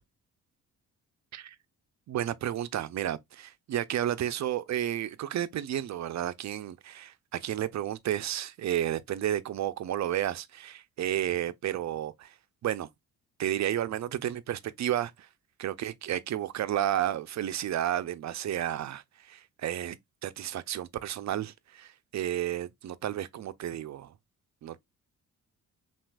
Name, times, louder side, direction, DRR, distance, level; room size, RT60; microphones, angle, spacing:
voice 1, 2.1-12.3 12.6-12.9 13.4-15.3 15.6-24.1 24.6-24.9, right 11 dB, 50° right, 0.5 m, -32 dB
5.8 x 2.4 x 2.3 m
cardioid pair, 75°, 35 cm